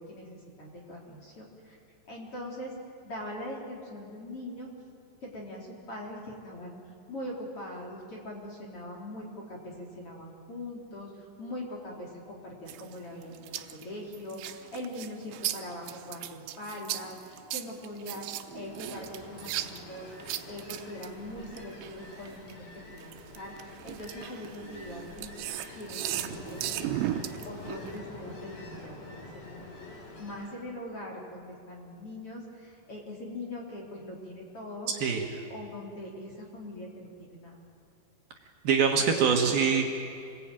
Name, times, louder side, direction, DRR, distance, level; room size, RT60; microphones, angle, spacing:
voice 1, 0.0-1.8 2.1-2.7 3.0-4.7 5.2-6.8 7.1-18.3 18.5-26.7 27.5-34.9 35.5-37.6 38.9-39.7, left 1 dB, 35° left, -2 dB, 3.7 m, -42 dB
sound 1, 12.7-22.5 23.0-28.0, right 13 dB, 85° right, 3.2 m, -37 dB
Ocean, 18.4-30.6, left 2 dB, 50° left, 5.0 m, -46 dB
voice 2, 34.9-35.2 38.6-39.8, right 6 dB, 65° right, 2 dB, 3.1 m, -24 dB
27.0 x 21.0 x 9.1 m, 2.5 s
omnidirectional pair, 5.1 m